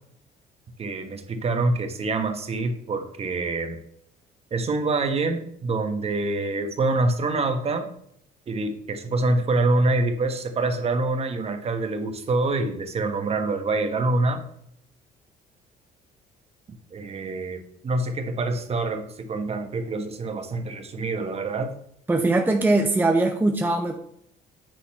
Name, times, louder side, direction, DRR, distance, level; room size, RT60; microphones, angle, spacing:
voice 1, 0.8-3.8 4.5-7.9 8.5-14.4 16.9-21.8, right 2 dB, 35° right, 7 dB, 1.3 m, -26 dB
voice 2, 22.1-24.0, right 2 dB, 10° right, 4 dB, 0.7 m, -21 dB
9.1 x 4.1 x 5.5 m, 0.69 s
cardioid pair, 110°, 17 cm